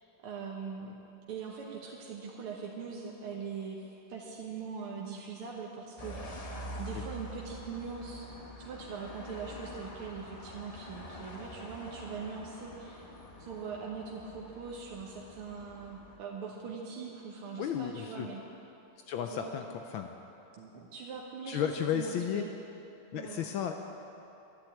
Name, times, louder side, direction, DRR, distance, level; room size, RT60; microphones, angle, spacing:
voice 1, 0.2-1.0 1.3-6.2 6.8-8.3 8.6-13.1 13.4-18.4 19.3-19.5 20.6-22.5 23.1-23.5, right 5 dB, 80° right, -2 dB, 2.0 m, -41 dB
sound 1, 6.0-16.2, equal, 45° left, 0.5 m, -46 dB
voice 2, 17.6-18.3 19.1-19.6 19.9-20.1 21.5-22.4 23.1-23.7, left 9 dB, 75° left, 5 dB, 1.4 m, -33 dB
11.5 x 11.5 x 8.7 m, 2.9 s
omnidirectional pair, 2.4 m